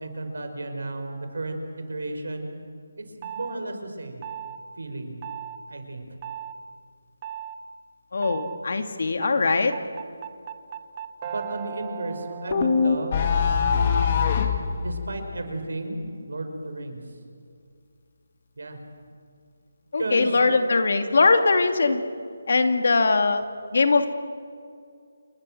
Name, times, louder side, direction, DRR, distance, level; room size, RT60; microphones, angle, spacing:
voice 1, 0.0-1.6 1.9-2.5 3.2-4.3 4.8-5.2 5.7-6.0 11.2-13.2 14.6-17.0 18.6-18.8 20.0-20.6, right 2 dB, 80° right, 6 dB, 5.3 m, -33 dB
sound 1, 3.2-3.6 4.2-4.6 5.2-5.6 6.2-6.6 7.2-7.6 8.2-8.6 9.2-14.3, right 10 dB, 20° right, 0.9 m, -38 dB
voice 2, 8.1-9.8 19.9-22.0 22.5-23.4 23.7-24.1, left 3 dB, 55° left, 7 dB, 2.4 m, -21 dB
sound 2, 12.5-14.7, left 6 dB, 30° left, 2.0 m, -21 dB
29.0 x 22.0 x 7.8 m, 2.3 s
hypercardioid pair, 175°, 0 cm